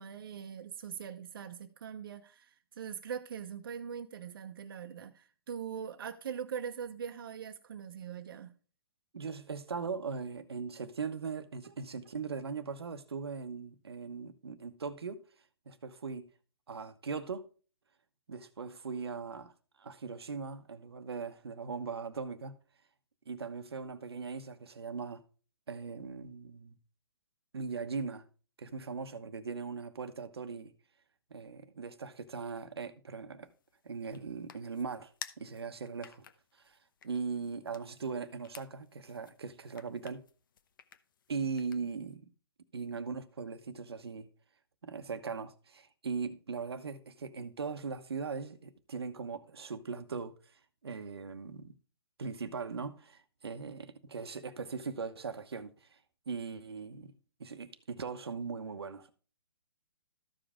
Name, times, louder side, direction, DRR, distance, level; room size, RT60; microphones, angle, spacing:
voice 1, 0.0-8.5 11.6-11.7 12.0-12.1, right 7 dB, 65° right, 0.9 m, -42 dB
voice 2, 9.1-15.2 15.7-16.3 16.7-17.4 18.3-19.5 19.8-22.6 23.3-25.2 25.7-26.8 27.5-28.2 28.6-30.7 31.3-33.5 33.8-36.2 36.6-36.8 37.0-40.2 41.3-42.3 42.7-44.3 44.8-50.3 50.8-51.7 52.2-56.0 56.3-57.1 57.4-59.1, right 5 dB, 90° right, 1.1 m, -39 dB
sound 1, 33.4-42.1, left 8 dB, 60° left, 0.8 m, -54 dB
13.5 x 5.2 x 3.6 m
hypercardioid pair, 145°, 13 cm